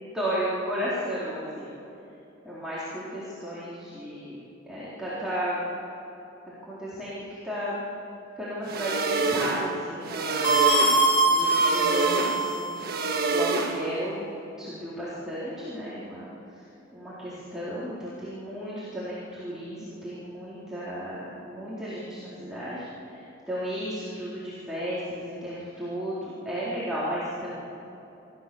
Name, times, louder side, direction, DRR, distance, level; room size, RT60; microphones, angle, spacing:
voice 1, 0.0-1.7 2.4-4.4 4.7-5.6 6.6-7.8 8.4-10.6 11.2-13.0 13.3-14.3 14.6-16.3 16.9-23.2 23.5-27.5, equal, 5° right, -10 dB, 4.1 m, -34 dB
sound 1, 8.7-14.1, right 3 dB, 55° right, 1.6 m, -28 dB
sound 2, 10.4-12.8, right 2 dB, 80° left, 3.9 m, -22 dB
27.0 x 14.5 x 7.1 m, 3.0 s
head